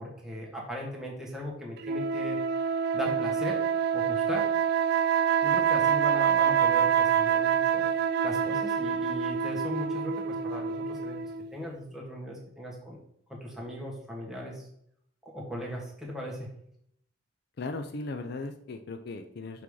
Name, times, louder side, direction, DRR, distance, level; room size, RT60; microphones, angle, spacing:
voice 1, 0.0-2.4 2.9-3.6 3.9-4.5 5.4-7.9 8.2-11.2 11.5-13.0 13.3-14.7 15.2-16.5, equal, ahead, -3 dB, 1.4 m, -38 dB
sound 1, 1.8-11.5, right 7 dB, 55° right, 0.3 m, -26 dB
voice 2, 17.6-19.6, left 3 dB, 55° left, 7 dB, 0.5 m, -37 dB
6.0 x 3.6 x 4.8 m, 0.71 s
head